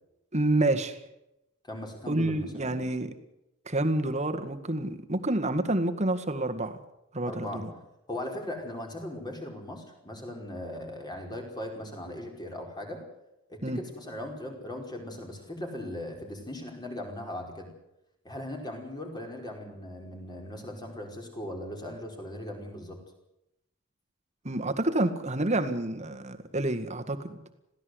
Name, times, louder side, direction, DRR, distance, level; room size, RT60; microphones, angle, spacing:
voice 1, 0.3-1.0 2.1-3.1 3.7-6.8 7.1-7.7 13.6-13.8 24.4-27.4, right 2 dB, 35° right, 7 dB, 1.9 m, -28 dB
voice 2, 1.6-2.8 7.2-7.6 8.1-13.0 13.5-17.7 18.2-23.0, left 1 dB, 20° left, 2 dB, 5.1 m, -39 dB
22.0 x 16.0 x 8.1 m, 0.86 s
head